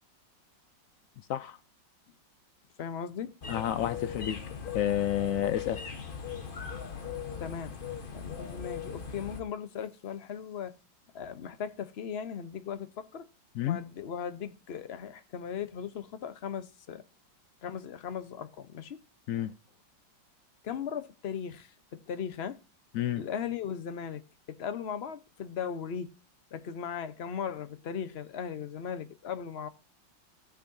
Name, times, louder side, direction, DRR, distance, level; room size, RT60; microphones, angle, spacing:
voice 1, 2.8-3.3 7.4-7.7 8.1-10.7 11.1-13.3 13.6-17.0 17.6-19.0 20.6-22.6 23.2-24.2 24.5-26.1 26.5-29.7, left 7 dB, 50° left, 0.8 m, -37 dB
sound 1, 3.4-9.4, left 6 dB, 35° left, 1.1 m, -39 dB
voice 2, 3.5-4.4 4.7-5.8 13.6-13.8 19.3-19.5 22.9-23.2, left 11 dB, 80° left, 0.7 m, -30 dB
16.0 x 6.6 x 2.6 m
omnidirectional pair, 2.0 m